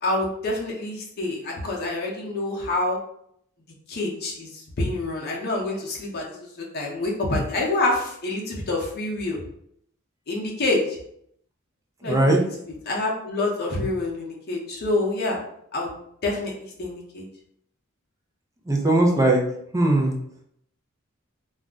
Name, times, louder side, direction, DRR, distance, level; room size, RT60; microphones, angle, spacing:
voice 1, 0.0-3.0 3.9-9.4 10.3-11.0 12.0-12.5 12.9-15.4 15.7-15.9 16.2-17.2, left 2 dB, 50° left, -2 dB, 0.7 m, -27 dB
voice 2, 12.0-12.4 18.7-19.4 19.7-20.2, right 1 dB, 15° right, 0 dB, 0.5 m, -19 dB
2.4 x 2.1 x 3.6 m, 0.71 s
head